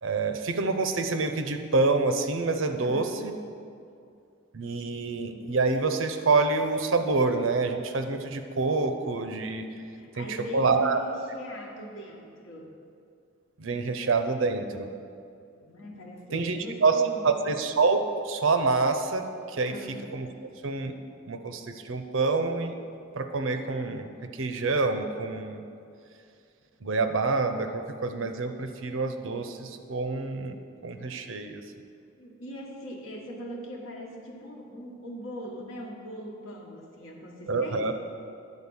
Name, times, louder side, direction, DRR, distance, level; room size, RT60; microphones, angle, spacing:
voice 1, 0.0-3.3 4.5-9.6 10.2-11.0 13.6-14.9 16.3-19.7 20.1-20.3 20.6-20.9 21.3-22.8 23.2-25.6 26.8-31.6 37.5-37.9, right 3 dB, 70° right, 7 dB, 0.6 m, -27 dB
voice 2, 2.8-3.2 9.9-12.7 15.6-17.4 19.7-20.1 32.2-37.9, equal, 80° left, 0 dB, 1.4 m, -41 dB
9.9 x 4.0 x 7.1 m, 2.4 s
head